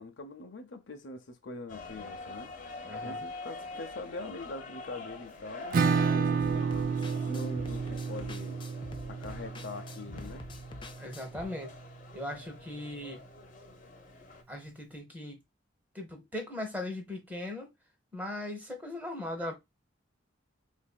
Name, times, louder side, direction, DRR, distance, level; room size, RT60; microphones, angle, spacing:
voice 1, 0.0-2.5 3.0-6.7 7.3-8.6 9.1-10.4, left 2 dB, 70° left, 0.7 m, -43 dB
sound 1, 1.7-14.4, left 3 dB, 45° left, 0.9 m, -46 dB
voice 2, 2.8-3.2 11.0-11.7 12.1-13.2 14.5-15.4 15.9-17.7 18.1-19.5, left 1 dB, 10° right, 0.9 m, -39 dB
Acoustic guitar / Strum, 5.7-11.2, right 5 dB, 45° right, 0.3 m, -31 dB
sound 2, 6.4-11.5, left 2 dB, 25° left, 0.4 m, -46 dB
4.0 x 2.6 x 2.2 m
head